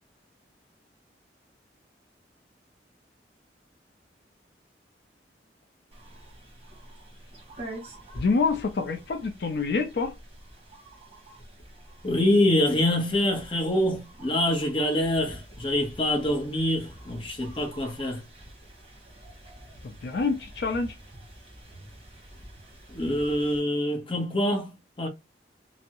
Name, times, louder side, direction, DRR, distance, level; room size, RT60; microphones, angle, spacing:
sound 1, 5.9-23.6, right 1 dB, 35° right, 1.1 m, -47 dB
voice 1, 8.2-10.1 19.8-21.0, left 4 dB, 65° left, 0.4 m, -27 dB
voice 2, 12.0-18.2 22.9-24.7 25.0-25.1, left 1 dB, 30° left, 0.8 m, -25 dB
3.4 x 2.0 x 2.8 m
head